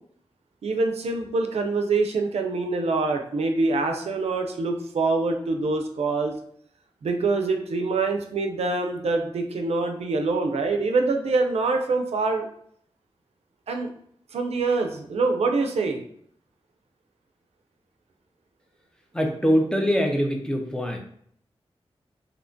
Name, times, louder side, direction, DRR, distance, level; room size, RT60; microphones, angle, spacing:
voice 1, 0.6-6.3 7.0-12.5 13.7-13.9 14.3-16.0, right 3 dB, 75° right, 4 dB, 0.4 m, -25 dB
voice 2, 19.1-21.0, equal, 5° left, 2 dB, 0.4 m, -23 dB
2.7 x 2.1 x 2.5 m, 0.65 s
cardioid pair, 60°, 11 cm